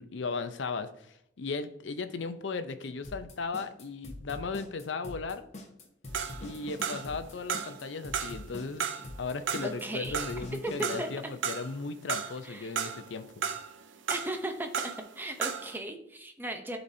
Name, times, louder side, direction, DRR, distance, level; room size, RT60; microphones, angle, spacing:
voice 1, 0.0-5.4 6.4-13.3, left 4 dB, 75° left, 10 dB, 0.6 m, -36 dB
sound 1, 3.0-11.0, left 2 dB, 35° left, 1.1 m, -43 dB
sound 2, 6.1-7.2 7.5-8.4 8.8-11.8 12.1-13.1 13.4-15.1 15.3-15.8, right 7 dB, 80° right, 0.6 m, -34 dB
voice 2, 9.6-10.2 10.6-11.1 12.4-12.7 14.1-14.7 15.2-16.8, right 1 dB, 10° right, 5 dB, 0.7 m, -36 dB
11.5 x 4.1 x 2.7 m, 0.76 s
head